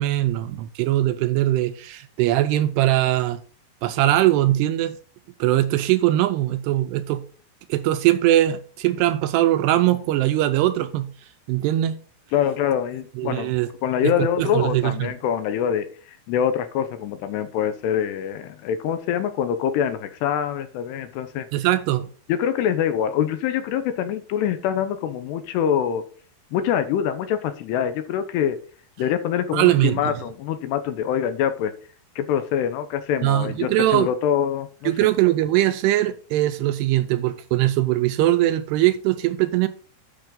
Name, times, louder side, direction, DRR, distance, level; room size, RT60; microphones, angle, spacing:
voice 1, 0.0-3.4 3.8-5.0 5.4-7.2 7.7-11.1 11.5-12.0 13.2-13.7 14.0-15.1 21.5-22.1 29.5-30.0 33.2-34.1 34.9-39.7, right 14 dB, 80° right, 2.5 m, -21 dB
voice 2, 12.3-13.5 13.8-21.5 22.3-26.0 26.5-28.6 29.0-31.7 32.2-34.9, left 9 dB, 80° left, 2.7 m, -24 dB
10.0 x 6.3 x 3.8 m
omnidirectional pair, 5.1 m